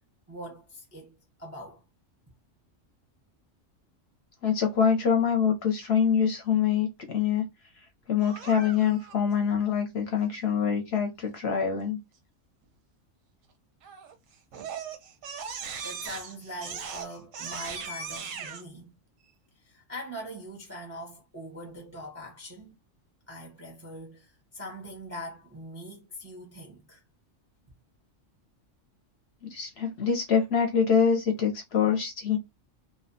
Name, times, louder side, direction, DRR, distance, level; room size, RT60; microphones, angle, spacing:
voice 1, 0.3-1.8 15.8-19.0 19.5-22.8 23.3-27.0, equal, 20° right, 0.5 m, -42 dB
voice 2, 4.4-7.5 8.1-12.0 29.5-32.4, left 7 dB, 65° left, 0.8 m, -25 dB
Crying sobbing, 8.2-9.1 13.8-14.1 14.5-18.6, right 6 dB, 90° right, 1.0 m, -38 dB
2.6 x 2.1 x 2.5 m
omnidirectional pair, 1.3 m